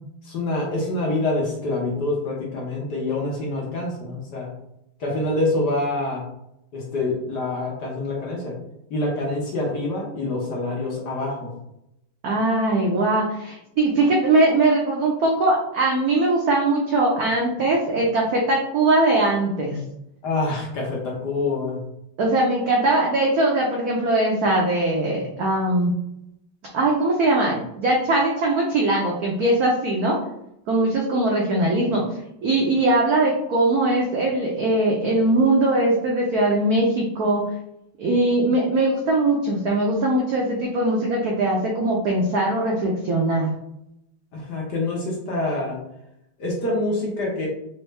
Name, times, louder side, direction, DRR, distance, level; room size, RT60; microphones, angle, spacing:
voice 1, 0.3-4.5 5.0-6.2 6.7-8.5 8.9-11.5 20.2-21.8 44.3-45.8 46.4-47.5, left 2 dB, 55° left, -2 dB, 1.4 m, -26 dB
voice 2, 12.2-19.8 22.2-25.9 26.7-30.2 30.7-32.0 32.4-37.4 38.0-43.5, right 2 dB, 75° right, -2 dB, 0.8 m, -21 dB
4.3 x 2.6 x 3.2 m, 0.81 s
omnidirectional pair, 2.4 m